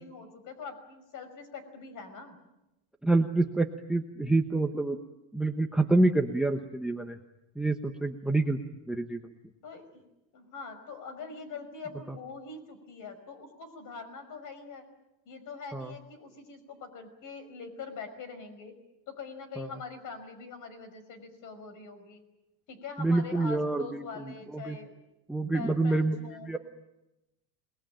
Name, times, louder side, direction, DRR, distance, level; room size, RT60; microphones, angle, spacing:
voice 1, 0.0-2.4 9.6-10.0 10.3-14.9 15.3-18.7 19.1-22.2 22.7-25.0 25.5-26.6, left 5 dB, 40° left, 11 dB, 5.6 m, -43 dB
voice 2, 3.0-5.0 5.3-7.2 7.6-8.6 8.9-9.3 15.7-15.9 19.6-19.7 23.0-24.8 25.3-26.6, right 2 dB, ahead, 7 dB, 1.0 m, -27 dB
27.5 x 20.5 x 9.1 m, 0.93 s
supercardioid pair, 145°, 49 cm